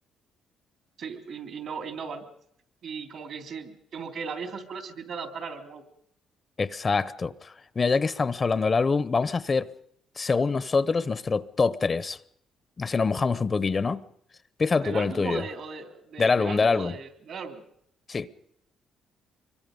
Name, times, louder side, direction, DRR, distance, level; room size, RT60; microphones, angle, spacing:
voice 1, 1.0-2.2 2.8-5.8 14.8-17.6, right 5 dB, 65° right, 3.3 m, -37 dB
voice 2, 6.6-9.7 10.2-12.2 12.8-14.0 14.6-15.4 16.2-16.9 18.1-18.3, left 4 dB, 35° left, 0.8 m, -25 dB
25.5 x 23.5 x 5.3 m
cardioid pair, 90°, 0 cm